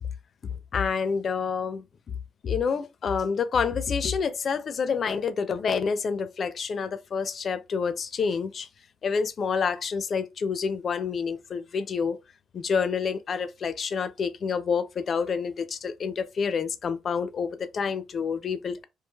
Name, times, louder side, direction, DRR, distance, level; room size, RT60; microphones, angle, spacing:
voice 1, 0.4-1.8 2.4-8.7 9.0-12.2 12.5-18.9, left 6 dB, 50° left, 0.4 m, -28 dB
3.1 x 2.4 x 2.3 m
cardioid pair, 90°, 0 cm